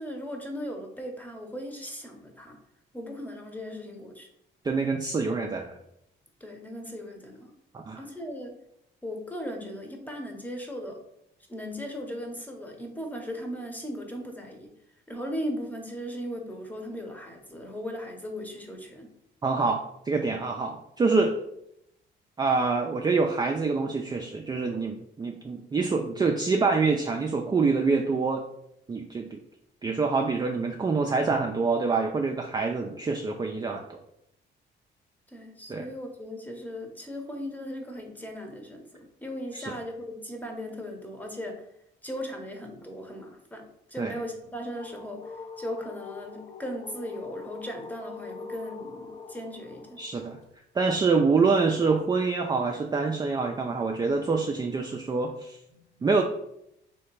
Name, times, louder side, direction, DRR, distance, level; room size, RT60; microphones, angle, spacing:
voice 1, 0.0-2.6 2.9-4.3 6.4-7.5 8.0-8.5 9.0-11.0 11.5-14.7 15.1-19.1 35.3-41.6 42.0-50.0, equal, 10° left, 3 dB, 0.9 m, -37 dB
voice 2, 4.6-5.8 7.7-8.0 19.4-21.4 22.4-28.4 28.9-29.4 29.8-34.0 35.7-35.9 39.5-39.7 44.0-44.2 50.0-50.4 50.7-55.6 56.0-56.2, right 4 dB, 20° right, 2 dB, 0.4 m, -26 dB
sound 1, 44.4-50.5, left 4 dB, 35° left, 0.5 m, -43 dB
3.3 x 2.8 x 4.5 m, 0.78 s
cardioid pair, 90°, 20 cm